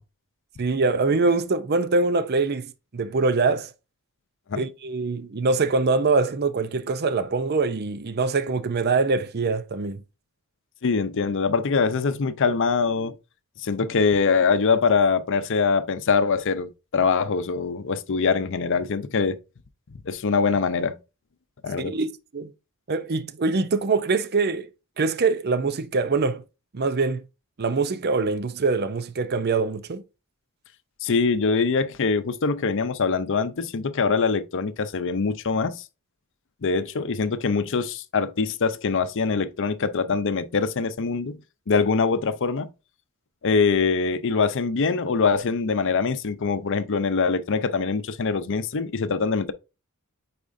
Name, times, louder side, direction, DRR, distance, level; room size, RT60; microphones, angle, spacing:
voice 1, 0.6-3.7 4.5-10.0 21.8-22.5 22.9-24.7 25.0-26.4 26.7-27.2 27.6-30.0, right 4 dB, 45° right, 0.6 m, -24 dB
voice 2, 10.8-13.2 13.6-19.4 20.0-21.0 21.6-21.9 31.0-35.8 36.6-41.4 41.7-42.7 43.4-49.5, left 5 dB, 60° left, 0.6 m, -23 dB
8.5 x 4.2 x 2.6 m
head